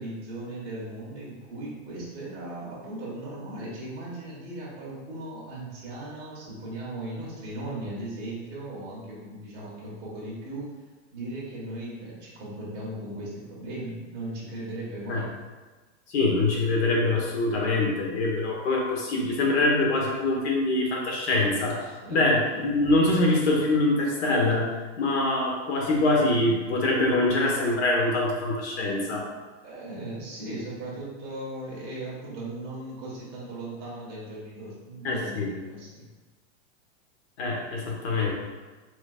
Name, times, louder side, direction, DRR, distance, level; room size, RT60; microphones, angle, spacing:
voice 1, 0.0-10.7 11.1-15.3 22.0-22.2 22.5-22.6 29.6-36.0, right 1 dB, 30° right, -7 dB, 1.4 m, -37 dB
voice 2, 16.1-24.7 25.0-29.2 35.0-35.5 37.4-38.3, left 2 dB, 65° left, -1 dB, 1.2 m, -24 dB
4.5 x 4.4 x 2.4 m, 1.3 s
supercardioid pair, 165°, 35 cm